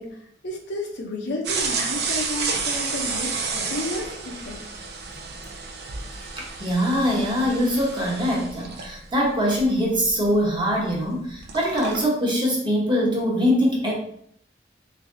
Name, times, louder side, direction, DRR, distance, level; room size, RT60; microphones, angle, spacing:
voice 1, 0.0-4.6, left 2 dB, 65° left, 1 dB, 0.6 m, -32 dB
sound 1, 1.4-11.0 11.3-12.0, right 4 dB, 60° right, 0.5 m, -31 dB
voice 2, 6.4-13.9, equal, 25° right, -3 dB, 1.0 m, -23 dB
3.5 x 3.2 x 2.6 m, 0.66 s
head